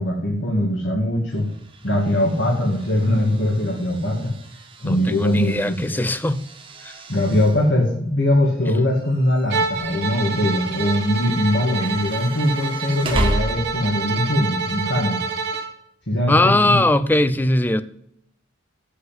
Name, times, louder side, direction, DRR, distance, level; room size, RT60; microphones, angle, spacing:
voice 1, 0.0-1.5 1.8-4.4 4.8-6.1 7.1-15.2 16.1-16.8, left 1 dB, 60° left, 2.1 m, -21 dB
sound 1, 1.3-14.1, right 1 dB, 25° right, 1.6 m, -34 dB
voice 2, 4.9-6.4 6.8-6.9 16.3-17.8, left 1 dB, 10° left, 0.4 m, -20 dB
Bowed string instrument, 9.5-15.7, right 4 dB, 55° right, 1.1 m, -27 dB
8.2 x 7.7 x 7.5 m
head